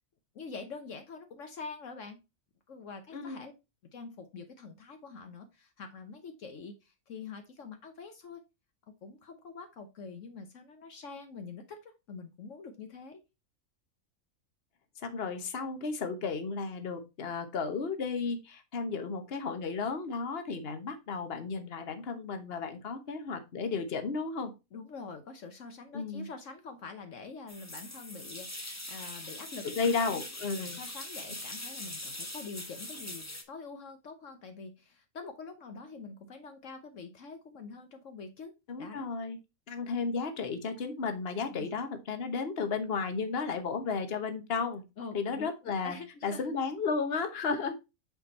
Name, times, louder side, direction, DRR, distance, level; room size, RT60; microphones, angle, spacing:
voice 1, 0.3-2.2 2.7-3.5 3.9-8.4 9.0-13.2 24.7-30.2 30.5-38.5 38.8-39.1 41.5-41.7 45.0-46.5, left 4 dB, 70° left, 6 dB, 1.3 m, -45 dB
voice 2, 3.1-3.4 15.0-24.5 25.9-26.3 29.8-30.8 38.7-39.4 39.7-44.8 45.1-46.0 46.2-47.7, left 4 dB, 50° left, 7 dB, 1.3 m, -33 dB
sound 1, 27.5-33.4, left 1 dB, 15° left, 1.2 m, -42 dB
8.6 x 4.3 x 4.2 m, 0.25 s
omnidirectional pair, 1.4 m